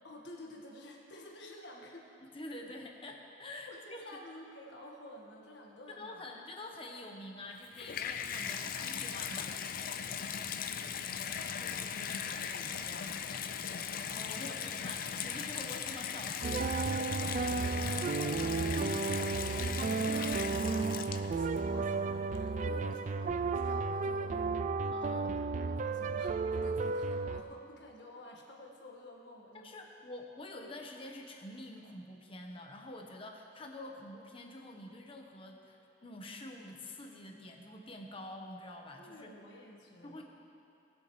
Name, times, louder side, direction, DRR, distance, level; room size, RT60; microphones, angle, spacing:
voice 1, 0.0-2.1 3.7-6.2 10.6-11.1 11.5-14.5 17.6-29.9 39.0-40.2, left 1 dB, 75° left, -1 dB, 1.7 m, -51 dB
voice 2, 2.3-4.2 5.9-9.6 11.7-11.9 14.1-17.0 17.4-17.6 24.9-25.4 29.6-39.3 40.0-40.2, left 1 dB, 30° left, 1 dB, 1.1 m, -47 dB
Water tap faucet / Bathtub (filling or washing), 7.5-21.6 22.3-22.4, left 7 dB, 50° left, 0.5 m, -38 dB
sound 1, 16.4-27.4, right 4 dB, 45° right, 0.3 m, -33 dB
19.5 x 8.2 x 3.2 m, 2.7 s
head